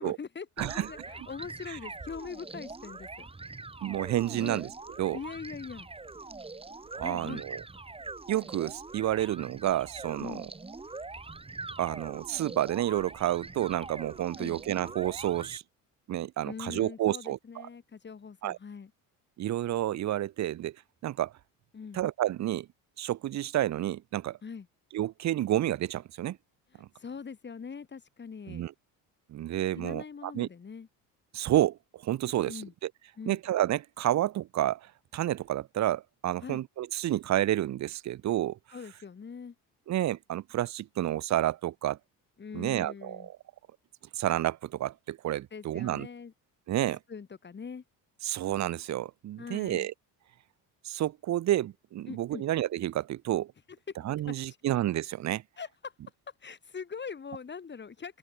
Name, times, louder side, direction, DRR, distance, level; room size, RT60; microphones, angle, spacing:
voice 1, 0.0-3.3 4.4-4.6 5.1-5.9 7.0-7.4 10.2-10.4 14.4-14.6 16.4-18.9 21.7-22.0 24.4-24.7 26.7-28.6 29.7-30.9 32.5-32.7 33.2-33.4 36.4-36.6 38.7-39.5 42.4-43.3 45.5-46.3 47.1-47.8 49.4-49.9 52.1-52.4 54.5-54.6 55.6-55.9 56.4-58.2, left 6 dB, 30° left, 6.4 m, -42 dB
sound 1, 0.6-15.6, right 3 dB, 15° right, 4.3 m, -43 dB
voice 2, 0.6-0.9 1.7-1.8 3.8-4.7 5.0-5.2 7.0-7.6 8.3-10.4 11.8-15.6 16.1-17.7 18.4-18.6 19.4-20.7 21.0-21.3 21.9-22.7 23.0-24.4 24.9-26.4 26.8-26.9 28.5-28.7 29.3-30.5 31.3-32.6 33.3-34.8 35.1-38.6 39.9-42.0 42.5-43.3 44.2-46.1 46.7-47.0 48.2-49.9 50.8-53.5 54.0-55.4, right 13 dB, 50° right, 0.9 m, -30 dB
open air
cardioid pair, 115°, 36 cm